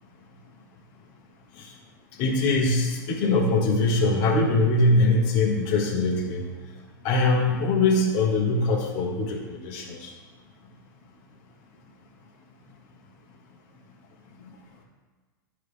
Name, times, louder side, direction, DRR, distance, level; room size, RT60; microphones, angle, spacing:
voice 1, 2.2-6.4 7.0-10.1, left 2 dB, 45° left, -2 dB, 1.4 m, -22 dB
11.0 x 3.7 x 3.4 m, 1.5 s
hypercardioid pair, 125°, 12 cm